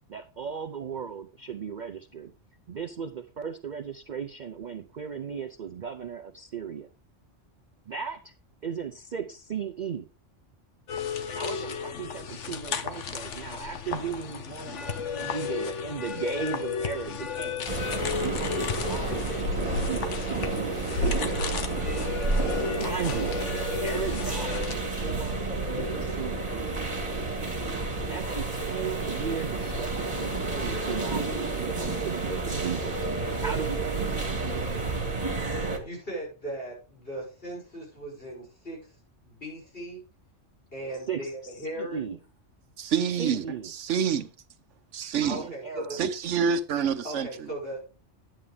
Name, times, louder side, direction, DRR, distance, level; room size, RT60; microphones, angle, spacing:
voice 1, 0.1-2.3 2.7-6.9 7.9-8.3 8.6-10.1 11.3-17.7 18.2-21.4 22.7-23.4 23.7-26.8 28.0-33.0 33.4-34.5 41.1-42.2 43.2-43.7 45.2-46.0, right 6 dB, 50° right, 0.6 m, -36 dB
sound 1, 10.9-24.7, left 5 dB, 70° left, 1.3 m, -33 dB
sound 2, 17.7-35.8, right 3 dB, 30° right, 1.9 m, -30 dB
voice 2, 35.8-38.9 39.2-40.0 40.7-42.0 45.3-46.0 47.0-47.8, right 1 dB, 50° left, 6.5 m, -38 dB
voice 3, 42.8-44.3 44.9-45.4 45.9-47.3, right 7 dB, 75° right, 1.1 m, -27 dB
11.0 x 8.7 x 3.5 m
omnidirectional pair, 1.3 m